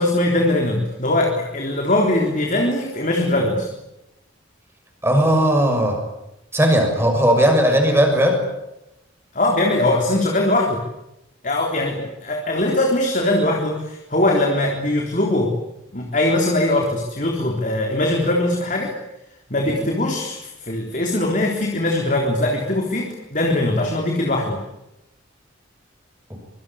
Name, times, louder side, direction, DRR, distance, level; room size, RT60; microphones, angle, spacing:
voice 1, 0.0-3.7 9.3-10.8 11.4-15.6 15.9-18.9 19.5-24.6, left 1 dB, 40° left, 1 dB, 3.9 m, -21 dB
voice 2, 5.0-6.0 6.5-8.4, equal, 10° right, 3 dB, 6.7 m, -17 dB
25.5 x 24.5 x 8.8 m, 0.91 s
head